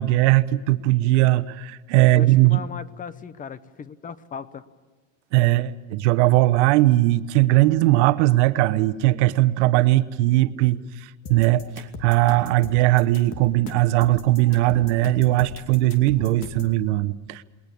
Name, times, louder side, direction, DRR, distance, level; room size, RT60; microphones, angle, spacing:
voice 1, 0.0-2.6 5.3-17.4, right 17 dB, 80° right, 14 dB, 1.0 m, -19 dB
voice 2, 2.1-4.6, left 6 dB, 25° left, 16 dB, 0.9 m, -37 dB
sound 1, 11.3-16.8, left 5 dB, 40° left, 2.6 m, -39 dB
21.0 x 20.0 x 8.5 m, 1.3 s
supercardioid pair, 140°, 34 cm